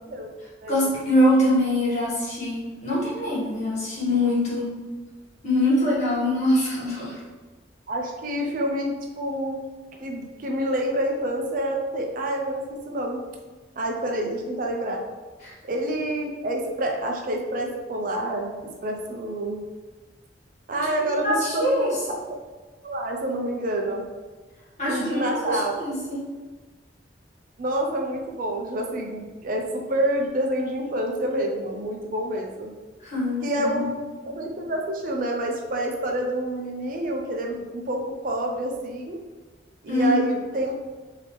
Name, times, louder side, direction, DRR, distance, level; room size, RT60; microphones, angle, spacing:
voice 1, 0.7-4.7 5.4-7.1 15.4-15.5 20.7-21.9 24.8-26.2 33.0-33.9 39.9-40.2, left 1 dB, 40° left, -8 dB, 1.4 m, -24 dB
voice 2, 7.9-9.6 10.0-13.2 13.8-15.0 15.6-19.6 20.7-22.0 22.8-24.1 24.9-25.8 27.6-32.7 33.4-39.2 39.8-40.7, right 1 dB, 50° right, 1 dB, 0.4 m, -28 dB
3.4 x 2.8 x 3.0 m, 1.3 s
head